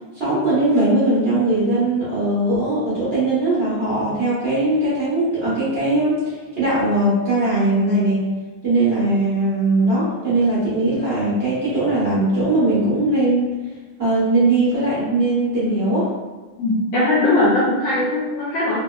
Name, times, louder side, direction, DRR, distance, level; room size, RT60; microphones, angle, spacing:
voice 1, 0.1-8.3 8.6-13.5 14.0-16.1, right 2 dB, 50° right, -10 dB, 0.7 m, -20 dB
voice 2, 16.6-18.8, left 2 dB, 70° left, -6 dB, 1.1 m, -19 dB
3.3 x 2.9 x 2.3 m, 1.3 s
omnidirectional pair, 2.4 m